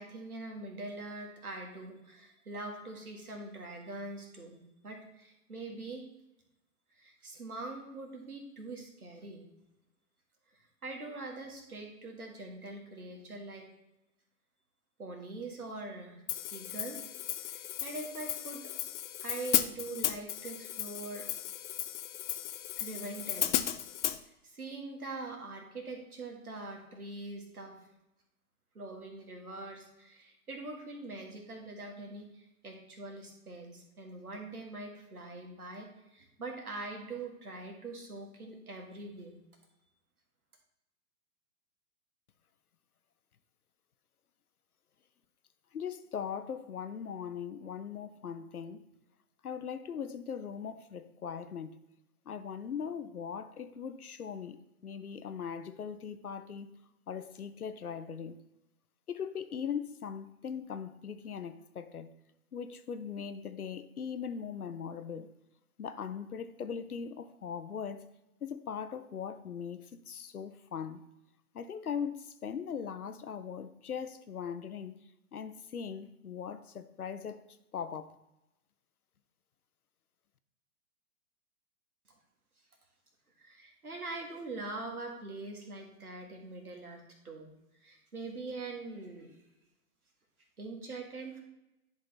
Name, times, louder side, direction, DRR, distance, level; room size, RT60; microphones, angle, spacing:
voice 1, 0.0-6.1 6.9-9.4 10.5-13.7 15.0-16.2 16.5-17.1 17.4-18.6 19.2-21.3 22.8-23.5 24.4-27.8 28.7-39.4 83.4-87.5 87.8-89.3 90.6-91.4, right 2 dB, 85° right, 1.9 m, -43 dB
Hi-hat, 16.3-24.2, left 12 dB, 55° left, 0.6 m, -35 dB
voice 2, 45.7-48.9 49.4-51.8 52.3-56.7 57.1-58.4 59.1-62.1 62.5-65.3 65.8-71.1 71.5-75.0 75.3-77.4 77.7-78.2, left 7 dB, 90° left, 0.7 m, -40 dB
10.5 x 3.8 x 4.2 m
figure-of-eight pair, 115°, 43 cm